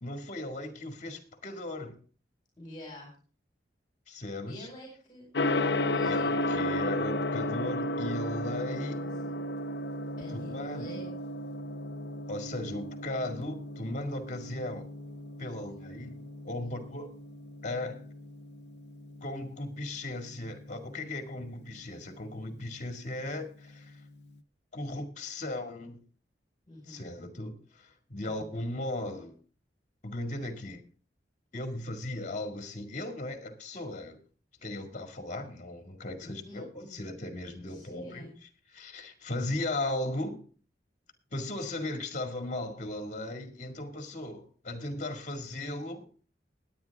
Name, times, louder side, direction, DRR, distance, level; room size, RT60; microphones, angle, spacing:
voice 1, 0.0-2.0 4.1-4.7 6.0-9.0 10.3-11.1 12.3-14.9 15.4-16.2 16.4-17.2 17.6-18.1 19.2-24.0 24.7-26.0 26.9-29.4 30.0-30.8 31.5-34.2 34.6-40.5 41.3-46.1, left 1 dB, 45° left, 2.0 m, -37 dB
voice 2, 2.6-3.1 4.5-5.3 5.9-6.7 8.9-9.4 10.2-11.1 26.7-27.0 28.2-28.5 36.2-37.1 37.7-38.3, equal, 25° left, 4.6 m, -48 dB
Gong, 5.3-24.3, left 1 dB, 70° left, 0.8 m, -35 dB
20.0 x 9.2 x 3.5 m
head